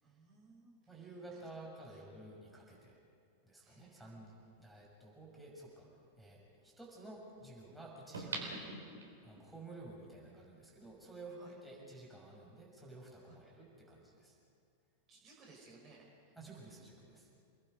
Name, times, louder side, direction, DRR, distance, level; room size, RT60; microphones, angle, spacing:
voice 1, 0.0-1.4 1.9-2.0 3.6-4.2 11.4-11.5 13.2-13.4 15.1-16.4, right 3 dB, 30° right, -2 dB, 5.4 m, -61 dB
voice 2, 0.9-3.0 3.4-5.9 6.2-8.6 9.2-14.4 16.4-17.3, right 2 dB, ahead, -4 dB, 6.3 m, -52 dB
sound 1, 4.5-4.6 8.1-9.5 10.0-10.1, right 3 dB, 70° right, 3.6 m, -43 dB
29.0 x 20.5 x 5.5 m, 2.5 s
figure-of-eight pair, 90°, 0 cm